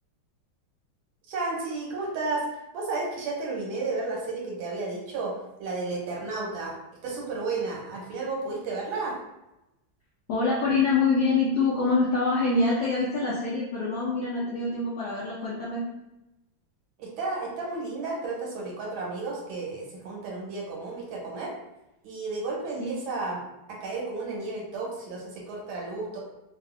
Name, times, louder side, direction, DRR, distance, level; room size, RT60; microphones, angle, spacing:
voice 1, 1.3-2.5 2.7-5.3 5.6-6.8 7.0-9.2 17.0-21.5 22.0-23.4 23.7-26.2, right 3 dB, 75° right, -2 dB, 1.5 m, -32 dB
voice 2, 10.3-15.8 22.8-23.0, left 3 dB, 75° left, -7 dB, 0.9 m, -25 dB
3.3 x 2.3 x 2.4 m, 0.92 s
omnidirectional pair, 2.3 m